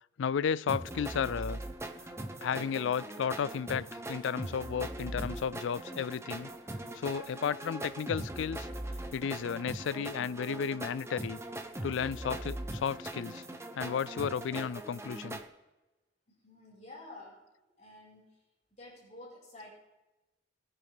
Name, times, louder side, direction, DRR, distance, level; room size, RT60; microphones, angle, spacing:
voice 1, 0.2-1.6 2.4-6.5 6.9-8.7 9.1-11.4 11.8-13.4 13.8-15.4, left 7 dB, 80° left, 0.4 m, -33 dB
sound 1, 0.7-15.4, right 1 dB, 15° right, 0.9 m, -40 dB
voice 2, 16.3-17.4 17.8-18.4 18.8-19.7, left 2 dB, 40° left, 5.2 m, -50 dB
21.5 x 9.6 x 3.5 m
head